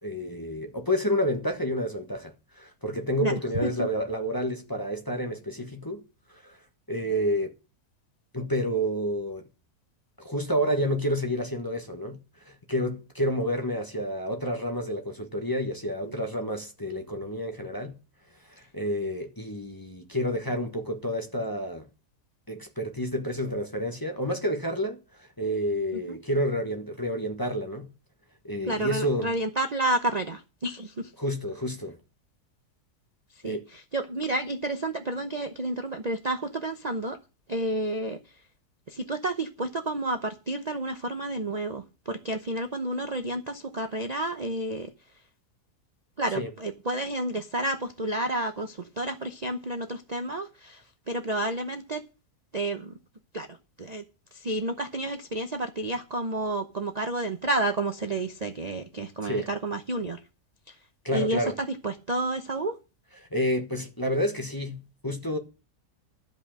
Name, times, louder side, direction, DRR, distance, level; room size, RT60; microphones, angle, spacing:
voice 1, 0.0-6.0 6.3-6.6 6.9-7.5 8.3-9.4 10.2-18.0 18.5-21.9 22.5-25.0 25.4-27.9 28.4-29.3 31.2-32.0 33.4-33.6 46.3-46.5 59.2-59.5 61.0-61.5 63.2-65.4, equal, 15° left, 1.3 m, -29 dB
voice 2, 28.7-31.1 33.4-37.2 37.5-38.2 38.9-44.9 46.2-50.8 51.1-52.0 52.5-52.9 53.3-53.5 53.8-54.0 54.3-60.2 60.7-60.8 61.1-62.7, right 2 dB, 35° right, 0.8 m, -30 dB
13.0 x 5.5 x 7.5 m
omnidirectional pair, 1.6 m